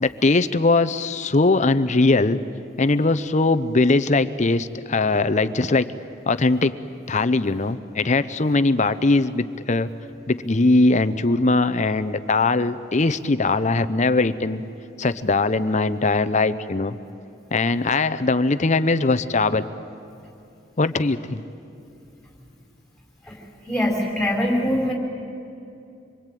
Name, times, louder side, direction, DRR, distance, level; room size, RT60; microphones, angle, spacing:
voice 1, 0.0-2.4 2.8-5.9 6.3-6.7 7.1-9.9 10.3-14.6 15.0-17.0 17.5-19.7 20.8-21.4, left 3 dB, 35° left, 13 dB, 0.7 m, -20 dB
voice 2, 23.7-24.9, left 1 dB, ahead, 0 dB, 4.7 m, -22 dB
26.5 x 23.0 x 9.2 m, 2.6 s
head